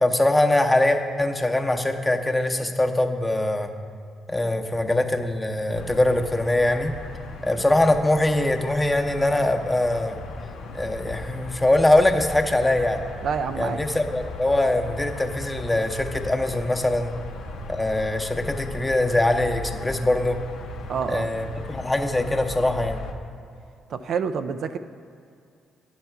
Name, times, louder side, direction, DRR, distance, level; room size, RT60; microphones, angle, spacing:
voice 1, 0.0-3.7 4.3-6.9 7.4-10.2 10.7-13.0 13.6-17.1 17.7-20.4 21.1-23.0, left 1 dB, 15° left, 4 dB, 0.8 m, -22 dB
sound 1, 5.7-23.1, left 2 dB, 75° left, 0.6 m, -38 dB
voice 2, 13.2-13.8 20.9-21.3 23.9-24.8, right 6 dB, 60° right, 9 dB, 0.3 m, -27 dB
9.5 x 5.6 x 4.6 m, 2.4 s
hypercardioid pair, 50°, 0 cm